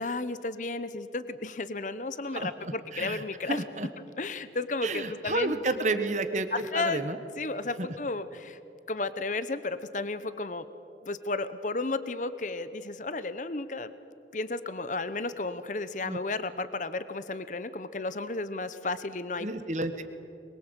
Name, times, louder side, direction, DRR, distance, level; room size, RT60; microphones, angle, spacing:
voice 1, 0.0-3.6 4.2-5.5 6.5-7.0 7.4-8.6 8.9-10.6 11.0-13.9 14.3-19.5, left 3 dB, 45° left, 13 dB, 1.0 m, -33 dB
voice 2, 2.3-3.9 4.8-7.2 7.8-7.9 16.0-16.2 19.4-20.0, right 2 dB, 40° right, 9 dB, 1.4 m, -31 dB
23.5 x 22.5 x 8.2 m, 2.7 s
head